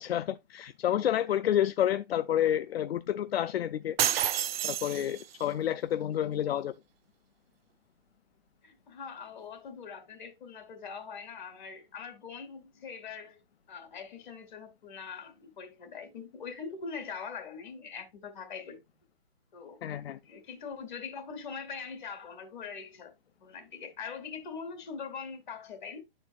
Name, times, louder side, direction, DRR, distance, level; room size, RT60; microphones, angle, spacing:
voice 1, 0.0-4.0 4.6-6.7 19.8-20.2, left 11 dB, 80° left, 0.5 m, -29 dB
sound 1, 4.0-5.4, right 11 dB, 75° right, 0.5 m, -29 dB
voice 2, 8.6-13.4 13.7-18.8 19.5-19.8 20.2-23.1 23.4-26.0, left 5 dB, 50° left, 2.1 m, -42 dB
11.5 x 4.4 x 2.3 m
hypercardioid pair, 155°, 30 cm